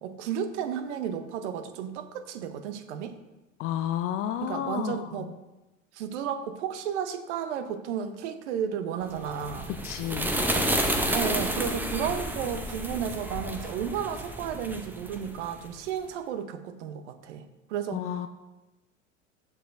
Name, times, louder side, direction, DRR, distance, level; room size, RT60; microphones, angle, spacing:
voice 1, 0.0-3.2 4.4-5.3 5.9-9.7 11.1-17.4 17.7-18.3, right 8 dB, 65° right, 9 dB, 0.9 m, -33 dB
voice 2, 3.6-5.1 9.8-10.3 17.9-18.3, left 11 dB, 35° left, 9 dB, 0.4 m, -31 dB
sound 1, 9.2-15.8, right 1 dB, 5° right, 0.7 m, -31 dB
13.5 x 4.7 x 2.6 m, 1.0 s
hypercardioid pair, 80°, 38 cm